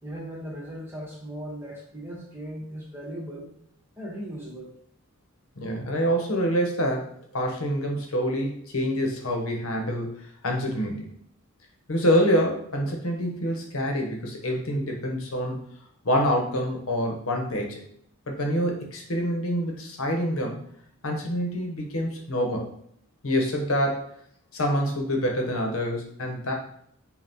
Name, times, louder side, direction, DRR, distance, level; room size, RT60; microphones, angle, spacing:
voice 1, 0.0-3.5 4.0-4.7, equal, 10° right, -3 dB, 1.1 m, -38 dB
voice 2, 5.6-7.1 7.3-10.1 10.4-11.1 11.9-15.6 16.0-17.8 18.3-20.6 21.0-22.7 23.2-24.0 24.5-26.5, equal, 80° left, 1 dB, 0.9 m, -26 dB
5.3 x 2.3 x 2.8 m, 0.69 s
head